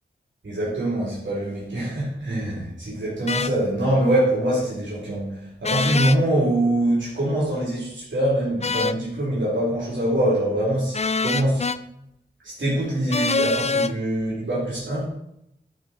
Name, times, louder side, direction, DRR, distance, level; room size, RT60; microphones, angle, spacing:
voice 1, 0.4-11.7 12.4-15.1, right 1 dB, 70° right, -7 dB, 4.1 m, -24 dB
sound 1, 3.3-3.5 5.6-6.2 8.6-9.0 10.9-11.8 13.1-13.9, left 4 dB, 35° left, 0.4 m, -24 dB
11.5 x 6.5 x 4.8 m, 0.80 s
wide cardioid pair, 70°, 20 cm